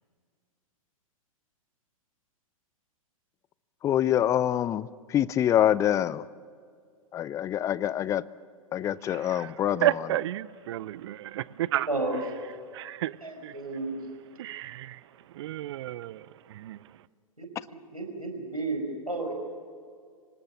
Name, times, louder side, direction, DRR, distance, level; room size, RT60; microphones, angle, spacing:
voice 1, 3.8-6.2 7.1-8.2 8.7-9.9, left 11 dB, 15° left, 0.5 m, -25 dB
voice 2, 9.1-11.9 12.7-13.5 14.4-16.8, right 14 dB, 50° right, 0.6 m, -32 dB
voice 3, 11.9-12.2 13.2-14.1 17.4-19.3, right 2 dB, 90° right, 5.0 m, -33 dB
25.5 x 19.0 x 7.1 m
figure-of-eight pair, 105°, 18 cm